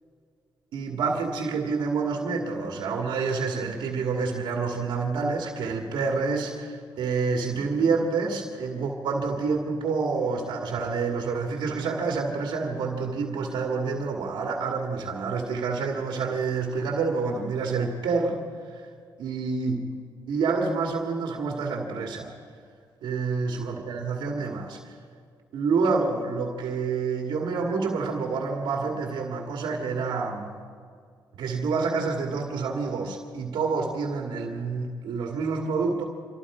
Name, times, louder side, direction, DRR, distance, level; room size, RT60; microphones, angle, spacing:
voice 1, 0.7-18.4 18.7-18.8 19.2-19.8 20.3-22.3 23.0-24.8 25.5-30.5 31.4-36.0, right 4 dB, 80° right, 2 dB, 2.1 m, -28 dB
25.5 x 23.5 x 5.0 m, 2.1 s
cardioid pair, 65°, 8 cm